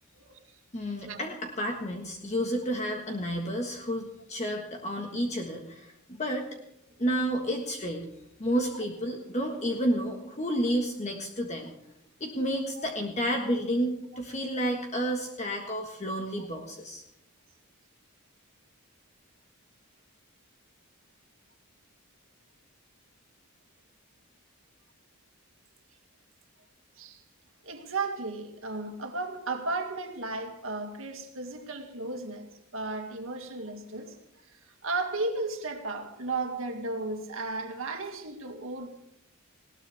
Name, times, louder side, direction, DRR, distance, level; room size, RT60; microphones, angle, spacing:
voice 1, 0.7-6.5 7.0-8.1 8.4-11.7 12.2-17.0, equal, 30° left, 1.5 m, -31 dB
voice 2, 27.6-34.2 34.8-38.9, right 3 dB, 65° right, 2.2 m, -34 dB
19.5 x 18.0 x 3.5 m
head